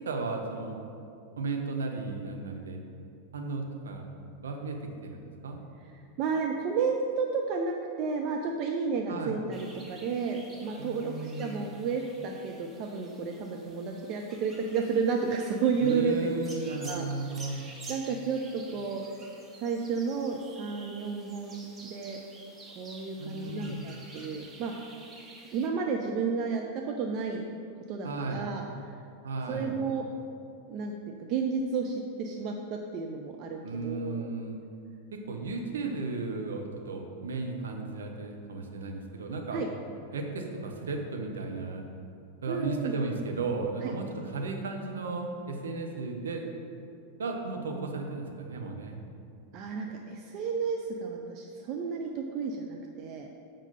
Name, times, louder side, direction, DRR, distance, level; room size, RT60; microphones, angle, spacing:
voice 1, 0.0-0.8 1.4-2.8 3.3-4.1 4.4-5.6 9.1-9.3 10.8-11.7 15.8-17.6 23.2-23.8 28.0-28.5 29.2-29.8 33.6-34.6 35.1-39.6 40.1-41.8 42.4-46.5 47.2-49.0, right 3 dB, 65° right, 2 dB, 1.0 m, -35 dB
voice 2, 6.2-16.3 16.8-17.1 17.4-17.6 17.9-19.0 19.6-22.2 22.7-24.7 25.5-27.4 27.9-28.6 29.5-30.0 30.7-30.9 31.2-34.3 39.5-39.7 42.5-42.9 43.8-43.9 49.5-53.3, right 5 dB, 40° right, 2 dB, 0.5 m, -32 dB
sound 1, 9.5-25.7, right 2 dB, 20° right, 1.1 m, -50 dB
7.2 x 5.4 x 5.3 m, 2.5 s
figure-of-eight pair, 90°, 0 cm